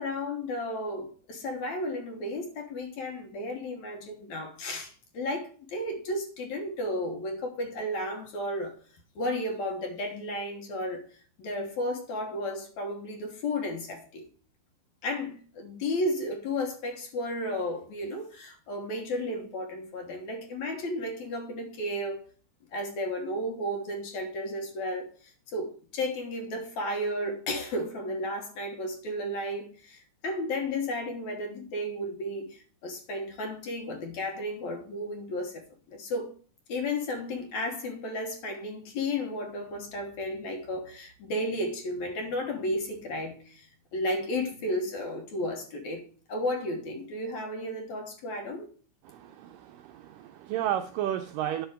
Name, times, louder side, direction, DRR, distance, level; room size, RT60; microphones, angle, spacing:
voice 1, 0.0-8.8 9.2-11.0 11.4-14.2 15.0-22.2 22.7-36.3 36.7-48.7, left 1 dB, 60° left, 2.2 m, -33 dB
voice 2, 49.1-51.7, right 11 dB, 80° right, 1.9 m, -32 dB
10.0 x 6.2 x 4.8 m
omnidirectional pair, 4.3 m